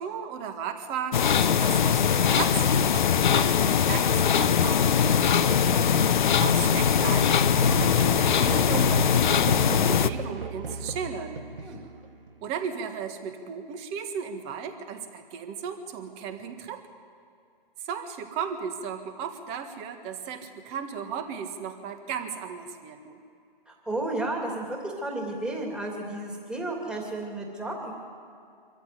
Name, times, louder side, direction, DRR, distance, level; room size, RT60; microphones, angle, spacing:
voice 1, 0.0-5.3 6.4-11.8 12.4-16.8 17.8-23.2, right 7 dB, 20° right, 7 dB, 1.6 m, -36 dB
sound 1, 1.1-10.1, left 7 dB, 55° left, 0.9 m, -21 dB
voice 2, 5.4-6.0 11.6-11.8 23.7-27.9, right 2 dB, 5° right, -1 dB, 2.7 m, -33 dB
Musical instrument, 7.5-12.3, right 3 dB, 65° right, 2.0 m, -34 dB
24.5 x 14.5 x 9.9 m, 2.5 s
hypercardioid pair, 145°, 29 cm